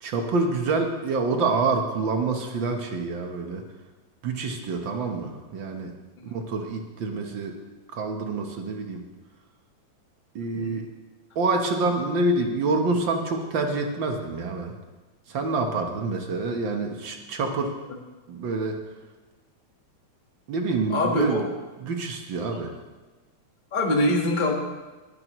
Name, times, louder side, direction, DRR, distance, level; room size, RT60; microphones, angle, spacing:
voice 1, 0.0-3.6 4.2-5.9 6.2-7.6 7.9-9.0 10.3-10.8 11.3-14.7 15.3-17.7 18.3-18.8 20.5-21.4 21.8-22.7, right 3 dB, 60° right, 3 dB, 1.3 m, -27 dB
voice 2, 20.9-21.5 22.5-22.6 23.7-24.5, left 1 dB, 35° left, 1 dB, 0.8 m, -24 dB
20.0 x 10.5 x 3.1 m, 1.2 s
omnidirectional pair, 3.4 m